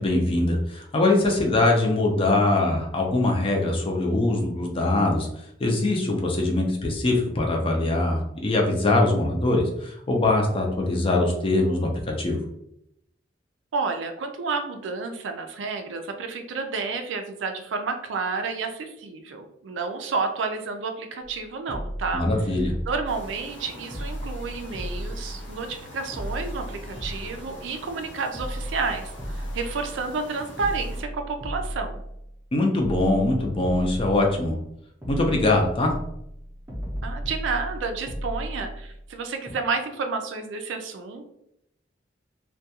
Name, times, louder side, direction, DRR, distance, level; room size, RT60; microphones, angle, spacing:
voice 1, 0.0-5.3 5.6-12.4 22.1-22.7 32.5-34.6 35.1-35.9, left 2 dB, 30° left, 1 dB, 0.5 m, -22 dB
voice 2, 13.7-22.2 22.9-32.0 37.0-41.2, right 4 dB, 75° right, 6 dB, 0.4 m, -30 dB
sound 1, 21.2-21.4 21.7-23.6 23.9-25.8 26.1-28.0 28.3-30.3 30.6-32.5 32.8-34.7 35.0-39.1 39.5-39.6, equal, 15° right, 0.6 m, -35 dB
sound 2, 23.1-31.0, left 1 dB, 85° left, 0.7 m, -44 dB
2.3 x 2.2 x 2.8 m, 0.78 s
head